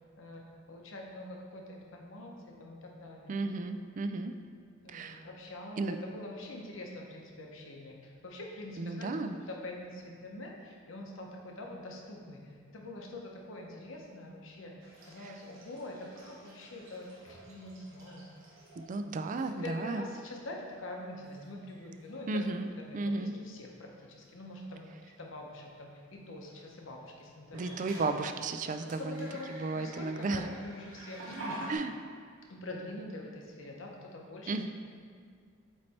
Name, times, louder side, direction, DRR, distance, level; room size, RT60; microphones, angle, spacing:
voice 1, 0.2-3.4 4.8-18.3 19.1-22.5 22.8-27.8 28.8-31.7 32.5-34.7, left 1 dB, 70° left, 0 dB, 0.9 m, -45 dB
voice 2, 3.3-4.3 4.9-5.2 5.8-6.0 8.8-9.4 15.2-15.3 18.8-20.1 22.3-22.7 22.9-23.3 27.5-30.5 31.7-31.9 34.5-34.7, right 3 dB, 40° right, 8 dB, 0.3 m, -34 dB
sound 1, 14.8-18.9 19.3-19.7 20.7-20.8 21.3-21.7 22.0-22.3 24.3-24.4 27.4-31.8, right 1 dB, 80° right, 1.2 m, -48 dB
8.1 x 3.3 x 4.3 m, 2.2 s
head